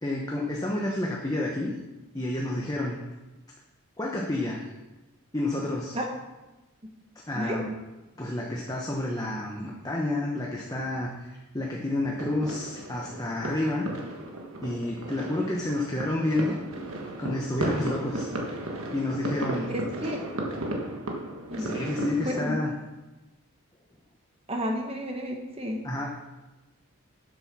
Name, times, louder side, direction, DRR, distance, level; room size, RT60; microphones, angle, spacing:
voice 1, 0.0-1.7 2.1-3.0 4.0-4.7 5.3-6.0 7.3-7.7 8.2-13.9 14.6-16.6 17.2-18.3 18.9-19.7 21.6-22.7 25.8-26.1, left 1 dB, 15° left, -2 dB, 0.9 m, -29 dB
sound 1, 12.0-22.5, right 1 dB, 70° right, 1.5 m, -35 dB
voice 2, 19.7-20.2 21.5-21.7 22.2-22.6 24.5-25.9, equal, 25° right, 2 dB, 1.3 m, -31 dB
7.5 x 7.3 x 6.0 m, 1.1 s
head